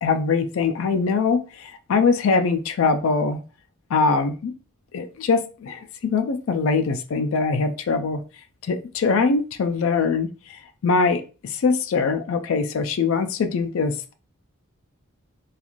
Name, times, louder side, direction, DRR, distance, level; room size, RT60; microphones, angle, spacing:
voice 1, 0.0-3.4 3.9-4.5 4.9-8.2 8.7-14.1, left 4 dB, 65° left, 7 dB, 0.3 m, -22 dB
2.4 x 2.4 x 2.9 m, 0.35 s
head